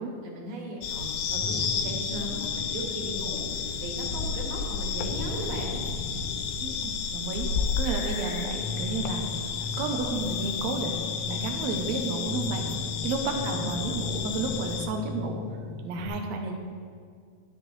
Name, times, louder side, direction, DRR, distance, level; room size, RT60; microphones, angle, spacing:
voice 1, 0.2-5.8 13.3-13.8, right 1 dB, 60° right, -2 dB, 3.0 m, -37 dB
sound 1, 0.8-14.9, left 6 dB, 80° left, 2.3 m, -32 dB
sound 2, 1.3-16.1, left 3 dB, 30° left, 1.6 m, -38 dB
voice 2, 6.6-9.2 9.8-12.7 13.0-15.4 15.8-16.6, right 3 dB, 80° right, 2 dB, 1.6 m, -32 dB
13.0 x 10.5 x 3.2 m, 2.1 s
omnidirectional pair, 4.3 m